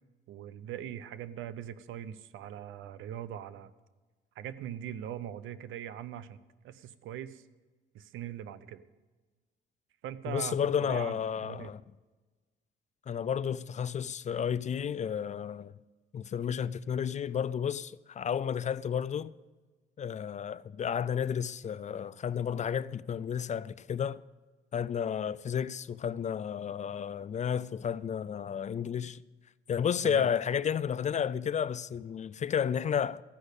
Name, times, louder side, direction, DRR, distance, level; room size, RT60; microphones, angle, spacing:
voice 1, 0.3-3.7 4.4-6.4 6.6-7.4 7.9-8.8 10.0-11.7 30.0-30.3, right 10 dB, 85° right, 0.6 m, -41 dB
voice 2, 10.3-11.8 13.1-15.7 16.1-19.3 20.0-24.2 24.7-29.2 29.7-33.2, left 8 dB, 35° left, 0.4 m, -32 dB
14.0 x 6.4 x 8.1 m
cardioid pair, 90°, 20 cm